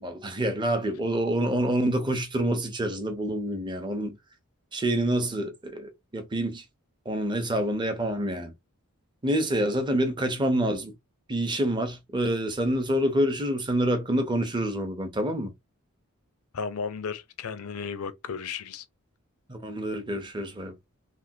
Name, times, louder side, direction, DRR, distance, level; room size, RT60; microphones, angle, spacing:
voice 1, 0.0-4.2 4.7-6.6 7.1-8.5 9.2-10.9 11.3-15.5 19.5-20.7, right 1 dB, 20° right, 0.6 m, -27 dB
voice 2, 16.5-18.8, left 5 dB, 80° left, 0.5 m, -34 dB
3.3 x 2.2 x 2.7 m
head